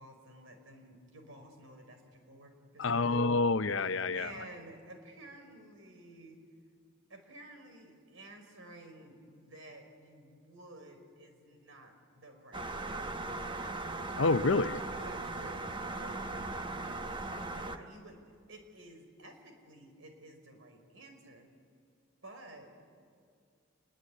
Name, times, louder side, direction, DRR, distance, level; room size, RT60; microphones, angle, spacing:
voice 1, 0.0-3.3 4.1-6.4 7.1-13.4 14.9-17.1 17.4-21.5 22.2-22.7, right 2 dB, 75° right, 5 dB, 5.2 m, -52 dB
voice 2, 2.8-4.3 14.2-14.8, left 3 dB, 65° left, 13 dB, 0.7 m, -28 dB
sound 1, 12.5-17.8, right 2 dB, 25° right, 1.1 m, -38 dB
26.5 x 22.0 x 9.8 m, 2.3 s
head